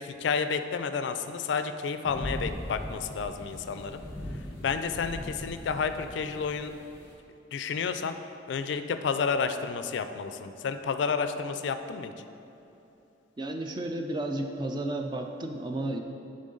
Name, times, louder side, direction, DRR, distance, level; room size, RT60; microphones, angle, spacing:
voice 1, 0.0-4.0 4.6-6.7 7.5-8.1 8.5-12.1, left 5 dB, 70° left, 9 dB, 0.3 m, -30 dB
sound 1, 2.0-7.1, left 1 dB, 15° left, 0.8 m, -39 dB
voice 2, 13.4-16.0, right 1 dB, 25° right, 4 dB, 0.4 m, -32 dB
10.0 x 3.8 x 3.8 m, 2.9 s
head